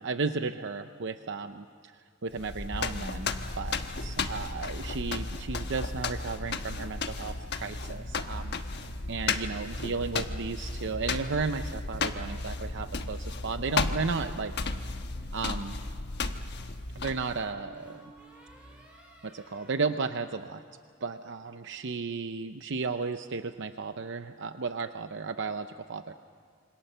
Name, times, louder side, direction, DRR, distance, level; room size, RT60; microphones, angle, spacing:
voice 1, 0.0-1.9 2.2-14.5 15.3-15.8 16.9-18.1 19.2-20.6 21.0-26.1, right 4 dB, 60° right, 9 dB, 0.7 m, -34 dB
sound 1, 2.3-17.5, left 3 dB, 55° left, 1.2 m, -34 dB
sound 2, 14.8-15.4 17.3-20.9, right 1 dB, 5° right, 5.4 m, -55 dB
27.5 x 25.5 x 6.8 m, 2.1 s
head